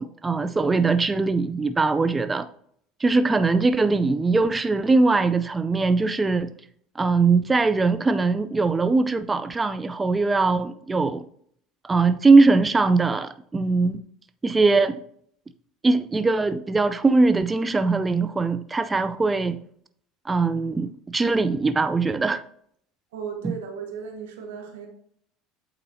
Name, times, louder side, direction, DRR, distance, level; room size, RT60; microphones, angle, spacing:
voice 1, 0.0-2.5 3.0-6.5 7.0-11.2 11.8-14.0 14.4-15.0 15.8-19.6 20.3-22.4, right 3 dB, 20° right, 0.3 m, -21 dB
voice 2, 23.1-24.9, right 6 dB, 90° right, 1.4 m, -35 dB
8.5 x 4.1 x 2.7 m
supercardioid pair, 90°, 0 cm